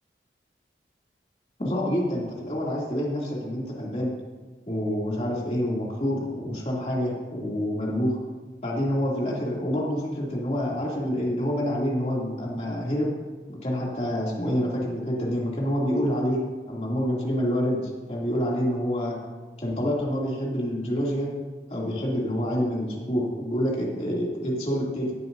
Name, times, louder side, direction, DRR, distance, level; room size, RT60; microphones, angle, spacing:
voice 1, 1.6-4.1 4.7-8.2 8.6-13.1 13.5-16.4 16.7-19.2 19.6-21.3 21.7-25.1, equal, 35° left, -4 dB, 2.7 m, -27 dB
17.0 x 9.4 x 2.7 m, 1.4 s
head